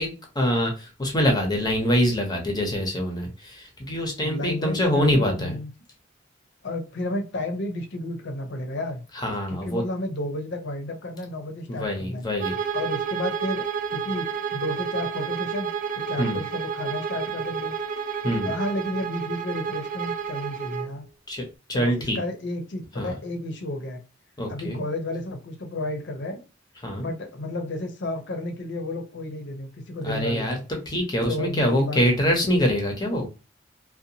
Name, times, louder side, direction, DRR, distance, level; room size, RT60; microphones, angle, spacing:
voice 1, 0.0-5.6 9.1-9.8 11.7-12.6 16.2-16.4 18.2-18.5 21.3-21.4 21.7-22.2 23.0-23.1 24.4-24.8 26.8-27.1 30.0-30.6 30.9-33.3, equal, 20° left, 2 dB, 0.7 m, -24 dB
voice 2, 4.2-5.7 6.6-9.0 9.5-12.2 12.7-17.7 18.5-21.1 21.7-24.0 24.5-26.4 26.9-30.6 31.3-32.0, left 1 dB, 65° left, 5 dB, 0.7 m, -32 dB
Bowed string instrument, 12.4-20.9, right 6 dB, 45° right, 0.4 m, -30 dB
2.7 x 2.2 x 2.7 m, 0.31 s
head